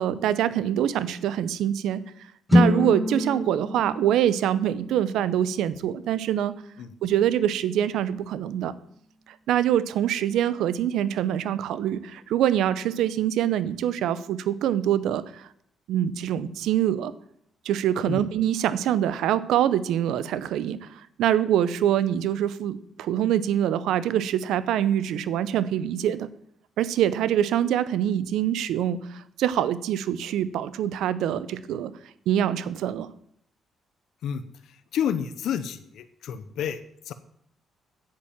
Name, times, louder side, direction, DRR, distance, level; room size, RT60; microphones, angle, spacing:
voice 1, 0.0-2.0 2.5-6.5 7.0-8.7 9.5-15.5 15.9-17.1 17.6-26.3 26.8-31.9 32.3-33.1, right 10 dB, 85° right, 16 dB, 0.7 m, -25 dB
sound 1, 2.5-6.5, left 1 dB, 5° left, 0.6 m, -26 dB
voice 2, 34.2-37.1, left 8 dB, 75° left, 11 dB, 0.7 m, -30 dB
8.6 x 7.6 x 7.2 m, 0.69 s
cardioid pair, 90°, 0 cm